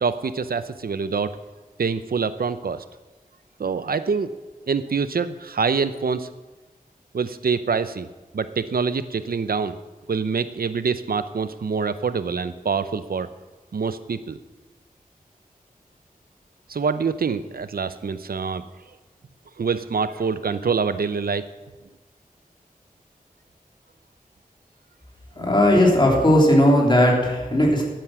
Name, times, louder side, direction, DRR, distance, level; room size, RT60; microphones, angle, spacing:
voice 1, 0.0-1.3 1.8-2.8 3.6-4.3 4.7-6.3 7.1-8.1 8.3-9.8 10.1-13.3 13.7-14.4 16.7-18.6 19.6-21.4, right 5 dB, 85° right, 12 dB, 0.7 m, -25 dB
voice 2, 25.4-27.8, left 1 dB, 30° left, -2 dB, 3.3 m, -17 dB
13.0 x 9.3 x 6.1 m, 1.2 s
wide cardioid pair, 80°, 15 cm